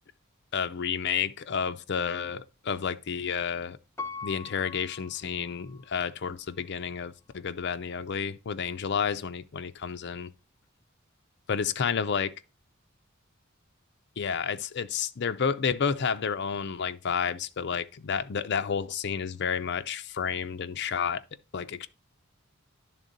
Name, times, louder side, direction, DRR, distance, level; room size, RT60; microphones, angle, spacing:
voice 1, 0.5-3.8 4.2-10.3 11.5-12.3 14.2-21.2 21.5-21.9, left 6 dB, 55° left, 0.5 m, -30 dB
Piano, 4.0-6.0 6.5-6.6, left 4 dB, 15° left, 0.6 m, -41 dB
10.5 x 3.6 x 3.9 m
head